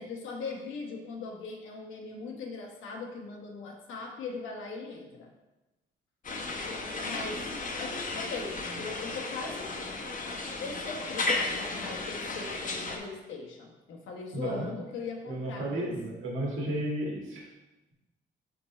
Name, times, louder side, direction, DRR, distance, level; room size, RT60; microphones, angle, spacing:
voice 1, 0.0-5.3 7.0-7.4 7.8-9.7 10.6-15.9, left 4 dB, 85° left, 0 dB, 1.2 m, -40 dB
sound 1, 6.2-13.0, left 3 dB, 40° left, 0.9 m, -34 dB
voice 2, 14.3-14.7 15.3-17.4, right 1 dB, 85° right, -2 dB, 1.7 m, -33 dB
6.0 x 3.8 x 4.2 m, 1.1 s
cardioid pair, 90°, 20 cm